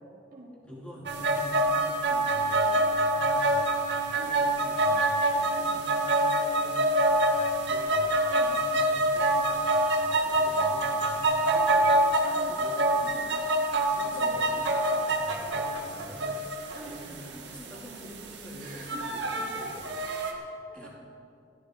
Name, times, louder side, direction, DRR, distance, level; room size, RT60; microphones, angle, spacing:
voice 1, 0.7-3.9 4.3-8.0 8.3-11.9 12.3-13.5 13.9-16.4 16.8-19.9 20.7-20.9, equal, 5° left, -6 dB, 4.0 m, -46 dB
sound 1, 1.1-20.3, right 1 dB, 65° right, 1.9 m, -26 dB
voice 2, 12.2-13.2 14.1-14.7 16.7-17.4 18.6-19.6 19.9-20.9, right 1 dB, 45° right, -2 dB, 3.2 m, -45 dB
15.5 x 15.5 x 5.2 m, 2.5 s
head